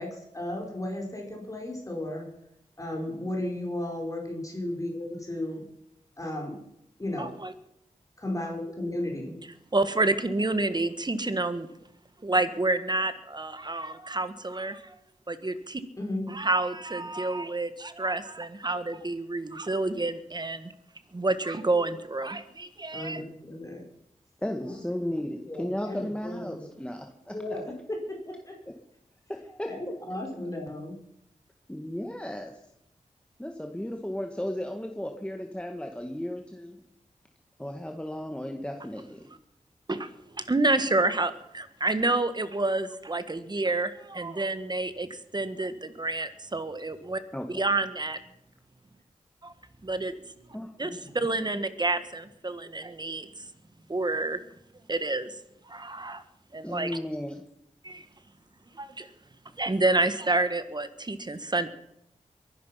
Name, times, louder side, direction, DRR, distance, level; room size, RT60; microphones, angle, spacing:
voice 1, 0.0-2.3 2.8-5.6 6.2-6.5 7.0-7.3 8.2-9.4 16.0-16.3 22.9-23.8 24.6-24.8 25.4-26.6 27.3-28.6 29.7-30.9 50.8-51.1, left 1 dB, 25° left, 0 dB, 4.8 m, -34 dB
voice 2, 7.2-7.5 9.7-11.7 12.2-14.9 15.3-15.8 16.3-20.7 21.1-23.2 39.9-40.1 40.4-45.1 45.3-47.2 47.5-48.2 49.4-49.5 49.8-50.1 50.8-53.5 53.9-54.4 54.9-55.3 55.7-56.2 56.5-56.9 57.8-58.1 58.8-59.1 59.6-61.7, right 2 dB, 35° right, 11 dB, 1.7 m, -29 dB
voice 3, 24.4-27.3 29.3-29.7 31.7-32.6 33.4-36.8 37.6-39.2 47.3-47.6 50.5-50.7 56.6-57.4, left 1 dB, 10° left, 3 dB, 1.8 m, -34 dB
22.5 x 11.0 x 5.8 m, 0.81 s
wide cardioid pair, 65°, 13 cm